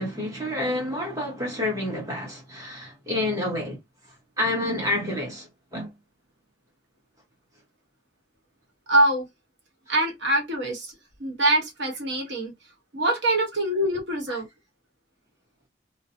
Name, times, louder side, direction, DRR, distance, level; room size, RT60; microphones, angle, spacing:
voice 1, 0.0-5.9 14.3-14.4, left 1 dB, 20° right, 1.1 m, -29 dB
voice 2, 8.9-9.3 9.9-10.9 11.2-12.5 12.9-14.5, right 1 dB, 75° right, 1.0 m, -24 dB
2.5 x 2.1 x 2.5 m
head